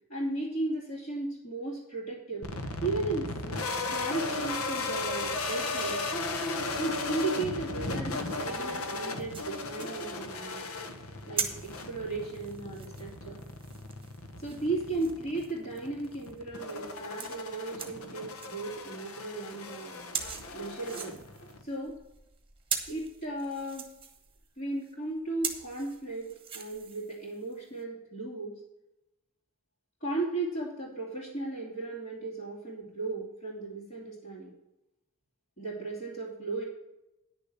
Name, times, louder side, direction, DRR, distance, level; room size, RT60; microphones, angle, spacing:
voice 1, 0.1-2.4 2.8-6.0 6.8-10.7 11.2-13.4 14.4-20.1 20.5-21.2 21.6-21.9 22.9-23.9 24.6-26.3 26.5-28.5 30.0-34.5 35.6-36.6, right 2 dB, 40° left, -8 dB, 3.1 m, -35 dB
sound 1, 2.4-21.6, left 3 dB, 90° left, 1.2 m, -36 dB
sound 2, 8.1-18.6 19.0-19.2 19.5-27.8, right 6 dB, 25° right, 1.2 m, -42 dB
10.0 x 6.9 x 5.7 m, 0.90 s
head